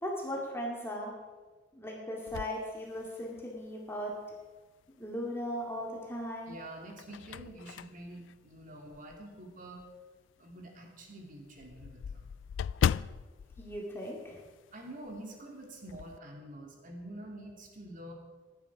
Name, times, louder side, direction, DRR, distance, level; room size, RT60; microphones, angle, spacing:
voice 1, 0.0-1.1 1.7-4.1 5.0-6.5 13.6-14.4, equal, 15° left, -2 dB, 2.3 m, -37 dB
sound 1, 2.3-3.6 4.1-4.2 5.7-6.2 6.7-9.3 9.8-9.9 10.3-10.4 10.7-10.8 11.0-14.8 15.0-15.3 15.6-16.2, left 8 dB, 85° left, 0.3 m, -37 dB
voice 2, 6.5-9.8 10.4-12.3 14.7-18.1, right 1 dB, 45° right, 1 dB, 2.8 m, -47 dB
16.5 x 11.5 x 4.8 m, 1.4 s
head